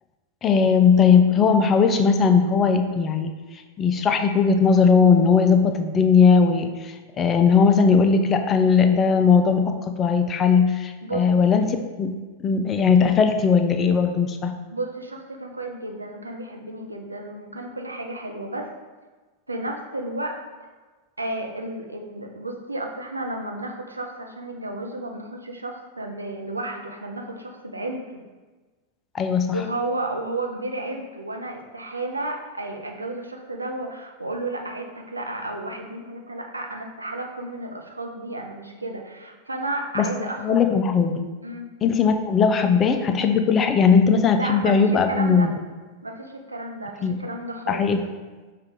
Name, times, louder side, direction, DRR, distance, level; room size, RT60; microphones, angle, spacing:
voice 1, 0.4-3.3 3.8-14.5 29.1-29.6 40.0-41.3 41.8-45.5 47.0-47.2 47.7-48.0, left 5 dB, 25° left, 7 dB, 0.3 m, -19 dB
voice 2, 14.7-18.7 19.5-20.4 21.2-28.2 29.5-40.6 41.4-41.7 44.3-45.5 46.0-47.9, right 2 dB, 80° right, 2 dB, 0.5 m, -32 dB
5.4 x 2.4 x 3.5 m, 1.3 s
figure-of-eight pair, 90°, 0 cm